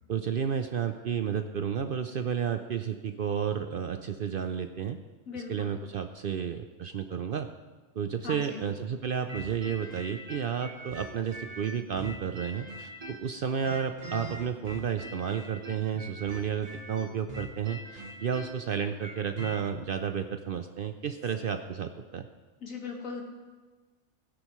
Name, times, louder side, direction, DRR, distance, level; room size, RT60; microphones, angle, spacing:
voice 1, 0.1-5.0 5.5-7.5 8.0-22.3, right 7 dB, 60° right, 7 dB, 0.6 m, -32 dB
voice 2, 5.3-5.7 8.2-8.6 22.6-23.2, left 5 dB, 85° left, 1 dB, 2.1 m, -39 dB
sound 1, 9.3-13.3 13.6-19.6, right 1 dB, 30° right, 1.0 m, -43 dB
16.5 x 9.9 x 3.1 m, 1.3 s
omnidirectional pair, 1.4 m